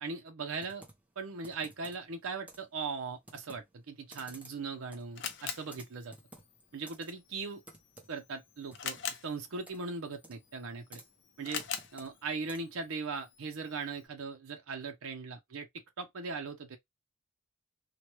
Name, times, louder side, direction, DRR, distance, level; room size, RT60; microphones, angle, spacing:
voice 1, 0.0-0.8 1.2-6.1 6.7-7.6 8.1-11.0 11.4-11.6 11.9-15.7 16.0-16.8, right 4 dB, 85° right, 0.6 m, -39 dB
Computer keyboard, 0.6-12.9, right 1 dB, 5° right, 0.6 m, -57 dB
Camera, 4.2-14.1, left 8 dB, 55° left, 0.5 m, -45 dB
2.9 x 2.2 x 2.9 m
head